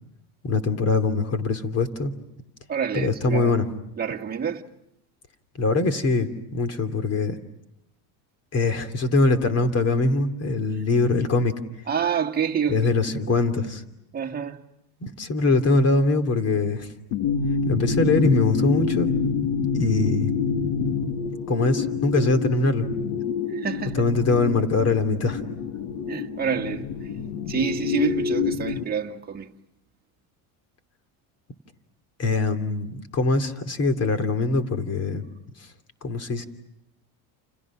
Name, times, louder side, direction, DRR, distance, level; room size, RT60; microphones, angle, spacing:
voice 1, 0.4-2.1 2.9-3.6 5.6-7.4 8.5-11.6 12.7-13.8 15.0-16.9 17.7-19.1 19.7-20.3 21.5-22.9 24.0-25.4 32.2-35.2 36.0-36.5, left 3 dB, 35° left, 2.8 m, -22 dB
voice 2, 2.7-3.6 4.0-4.6 11.9-12.9 13.3-13.4 14.1-14.6 23.5-24.0 26.1-26.9 27.5-29.5, right 7 dB, 20° right, 1.8 m, -27 dB
sound 1, 17.1-28.8, left 5 dB, 70° left, 1.9 m, -27 dB
29.5 x 29.5 x 6.1 m
cardioid pair, 135°, 45 cm